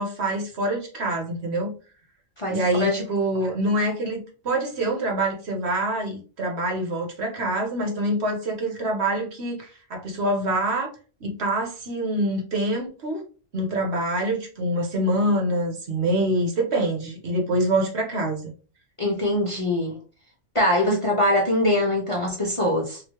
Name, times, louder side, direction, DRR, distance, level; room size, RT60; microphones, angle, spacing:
voice 1, 0.0-1.7 2.5-4.2 4.4-10.9 11.2-13.2 13.5-18.5, right 1 dB, 60° right, 0 dB, 1.2 m, -25 dB
voice 2, 2.4-3.0 19.0-20.0 20.5-23.0, left 1 dB, 35° left, -2 dB, 0.6 m, -23 dB
3.0 x 2.7 x 3.0 m, 0.37 s
omnidirectional pair, 1.3 m